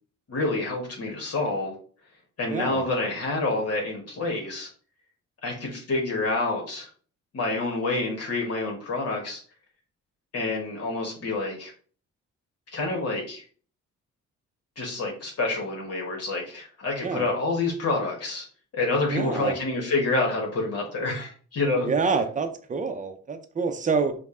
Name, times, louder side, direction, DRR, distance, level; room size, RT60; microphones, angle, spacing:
voice 1, 0.3-1.7 2.4-4.7 5.4-6.9 7.3-9.4 10.3-11.7 12.7-13.4 14.8-18.4 18.7-21.9, left 2 dB, 55° left, 1.3 m, -28 dB
voice 2, 2.5-2.9 17.0-17.3 19.1-19.5 21.8-24.1, right 4 dB, 25° right, 0.7 m, -27 dB
5.1 x 2.3 x 3.7 m
cardioid pair, 90°, 30 cm